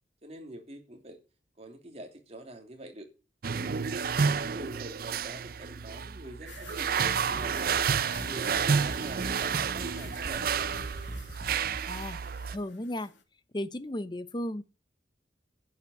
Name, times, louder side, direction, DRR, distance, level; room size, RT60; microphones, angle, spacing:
voice 1, 0.2-1.2 1.6-3.1 3.5-3.8 4.2-7.7 8.3-10.7, right 1 dB, 35° right, 2.9 m, -45 dB
sound 1, 3.4-12.6, right 6 dB, 55° right, 0.6 m, -30 dB
sound 2, 6.5-13.2, left 6 dB, 85° left, 2.4 m, -50 dB
sound 3, 7.3-11.9, equal, 10° left, 1.3 m, -43 dB
voice 2, 11.9-13.1 13.5-14.6, left 1 dB, 25° left, 0.8 m, -35 dB
11.0 x 8.1 x 8.4 m
head